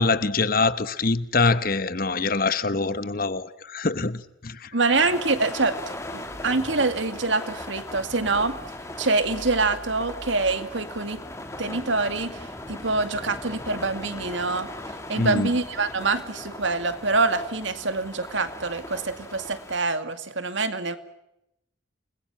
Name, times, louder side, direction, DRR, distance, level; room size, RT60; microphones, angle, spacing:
voice 1, 0.0-4.7 15.2-15.5, left 3 dB, 45° left, 1.2 m, -24 dB
voice 2, 4.7-5.8 6.1-8.6 9.0-11.2 11.6-14.7 15.1-21.0, right 3 dB, 70° right, 2.4 m, -25 dB
sound 1, 4.9-19.8, left 1 dB, 15° left, 2.7 m, -38 dB
29.0 x 21.0 x 7.3 m
head